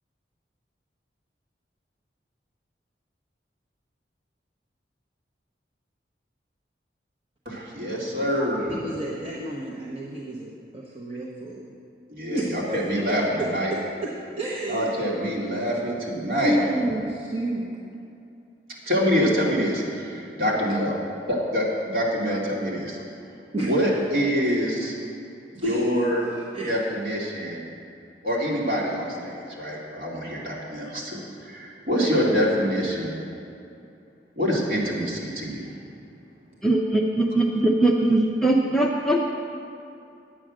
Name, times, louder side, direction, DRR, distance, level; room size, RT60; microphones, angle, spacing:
voice 1, 7.5-8.8 12.1-13.7 14.7-16.6 18.9-20.9 21.3-21.6 21.9-23.0 23.5-24.9 25.5-26.2 26.5-27.6 28.2-33.2 34.4-35.7, equal, 55° right, -5 dB, 2.6 m, -25 dB
voice 2, 8.7-11.7 12.3-12.8 13.7-14.1 14.4-14.9 16.4-17.7 23.5-23.7 25.6-26.1 26.5-26.7, right 1 dB, 35° right, -5 dB, 1.0 m, -30 dB
voice 3, 36.6-39.2, right 2 dB, ahead, -2 dB, 0.6 m, -21 dB
10.5 x 8.6 x 6.3 m, 2.6 s
head